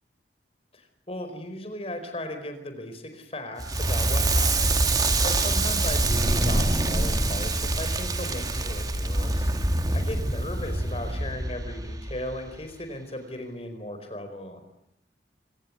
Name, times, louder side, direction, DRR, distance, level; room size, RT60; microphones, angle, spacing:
voice 1, 0.7-14.6, left 1 dB, 35° left, 8 dB, 4.7 m, -37 dB
Crackle, 3.6-12.6, right 2 dB, 20° right, 1.9 m, -25 dB
26.0 x 18.5 x 9.6 m, 0.78 s
head